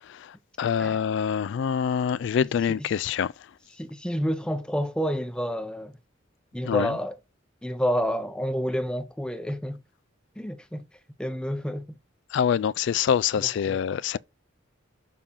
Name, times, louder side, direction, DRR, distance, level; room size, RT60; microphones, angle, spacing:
voice 1, 0.6-3.3 6.7-6.9 12.3-14.2, left 8 dB, 65° left, 0.3 m, -25 dB
voice 2, 2.4-2.9 3.7-6.0 6.5-7.2 7.6-9.8 10.4-10.9 11.2-12.0 13.4-13.8, equal, 5° left, 0.7 m, -29 dB
6.7 x 3.7 x 5.5 m
head